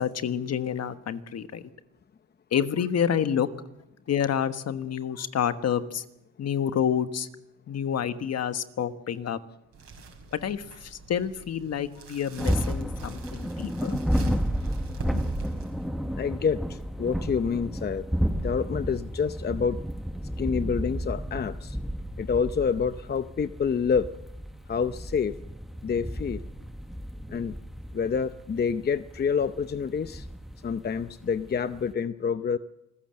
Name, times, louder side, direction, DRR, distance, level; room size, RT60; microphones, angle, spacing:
voice 1, 0.0-1.6 2.5-3.5 4.1-6.0 6.4-7.3 7.7-9.4 10.3-14.4 15.1-15.2, left 8 dB, 55° left, 10 dB, 1.4 m, -28 dB
sound 1, 9.7-15.9, right 4 dB, 55° right, 5.4 m, -44 dB
sound 2, 12.4-31.9, equal, ahead, 1.2 m, -32 dB
voice 2, 16.2-18.1 18.3-19.8 20.4-21.8 22.2-24.1 24.7-25.3 25.8-26.4 27.3-27.5 27.9-30.3 30.6-32.6, left 6 dB, 35° left, 11 dB, 0.7 m, -27 dB
26.5 x 15.0 x 7.7 m, 0.90 s
cardioid pair, 90°, 30 cm